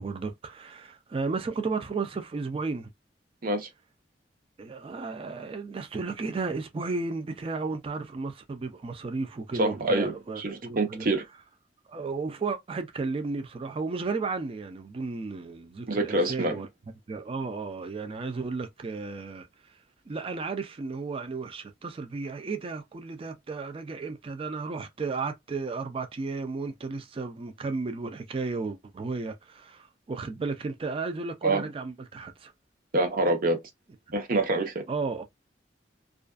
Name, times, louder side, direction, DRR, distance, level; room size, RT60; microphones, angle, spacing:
voice 1, 0.0-2.9 4.6-11.1 11.9-16.7 17.1-19.8 20.1-32.5 34.3-34.4 34.9-35.2, right 4 dB, 30° right, 0.3 m, -34 dB
voice 2, 9.6-11.2 15.9-16.6 31.4-31.6 32.9-33.6 34.1-34.8, right 2 dB, 55° right, 0.7 m, -26 dB
2.4 x 2.2 x 2.3 m
head